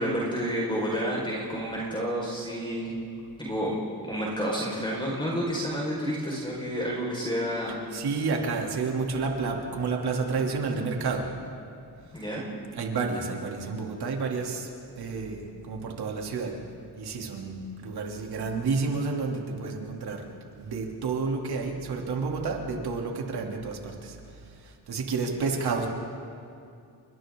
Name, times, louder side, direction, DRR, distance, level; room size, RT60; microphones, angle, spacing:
voice 1, 0.0-2.9 3.4-3.8 4.0-7.8 12.1-12.4, equal, 10° left, -4 dB, 5.2 m, -30 dB
voice 2, 7.9-11.3 12.7-14.7 15.0-16.6 17.0-20.3 20.6-25.9, right 4 dB, 65° right, 0 dB, 3.3 m, -30 dB
30.0 x 25.5 x 3.9 m, 2.4 s
cardioid pair, 115°, 41 cm